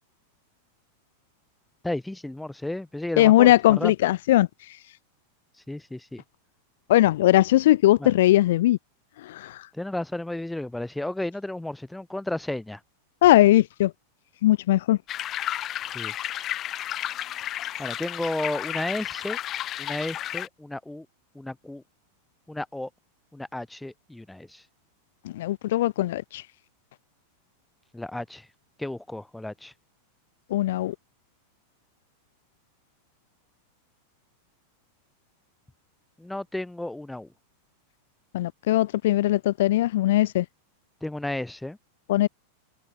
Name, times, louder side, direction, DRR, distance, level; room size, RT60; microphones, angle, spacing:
voice 1, 1.8-3.9 5.7-6.2 8.0-8.1 9.7-12.8 15.9-16.1 17.8-19.4 19.8-21.1 21.3-21.8 22.5-22.9 23.3-24.6 27.9-28.5 28.8-29.7 36.2-37.3 41.0-41.8, left 1 dB, 5° left, 2.6 m, -33 dB
voice 2, 3.2-4.8 6.9-8.8 9.2-9.7 13.2-13.9 14.4-15.0 25.2-26.4 30.5-30.9 38.3-40.4 42.1-42.3, left 15 dB, 55° left, 0.9 m, -20 dB
sound 1, 15.1-20.5, left 12 dB, 30° left, 2.1 m, -32 dB
figure-of-eight pair, 90°, 0 cm